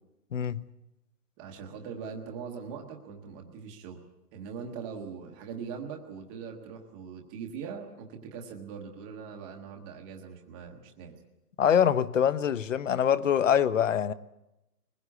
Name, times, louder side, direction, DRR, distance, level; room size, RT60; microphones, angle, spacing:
voice 1, 0.3-0.6 11.6-14.1, left 8 dB, 50° left, 1.0 m, -24 dB
voice 2, 1.4-4.0 4.3-11.1, right 6 dB, 5° right, 0.8 m, -41 dB
22.0 x 20.5 x 8.3 m
hypercardioid pair, 160°, 48 cm